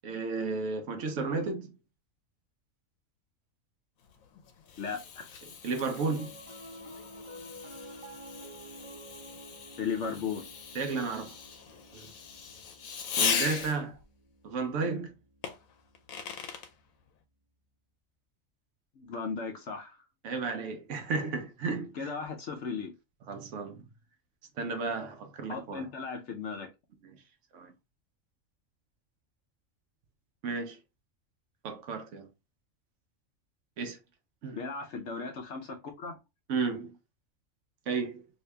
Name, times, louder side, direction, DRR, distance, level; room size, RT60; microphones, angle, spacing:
voice 1, 0.0-1.7 5.6-6.3 10.7-11.3 11.9-12.1 13.2-14.0 14.4-15.1 20.2-22.1 23.3-23.8 24.6-25.8 27.0-27.2 27.5-27.7 30.4-30.8 31.6-32.3 33.8-34.0 34.4-34.6 36.5-36.9 37.9-38.2, right 4 dB, 65° right, 0.9 m, -33 dB
Fireworks, 4.1-14.0 15.4-16.7, left 7 dB, 85° left, 1.1 m, -38 dB
voice 2, 4.8-5.3 9.8-10.5 19.0-20.0 21.9-22.9 25.5-26.7 34.6-36.2, left 5 dB, 65° left, 0.9 m, -36 dB
Piano, 6.1-16.6, right 1 dB, 40° right, 0.5 m, -51 dB
2.9 x 2.7 x 3.2 m
omnidirectional pair, 1.4 m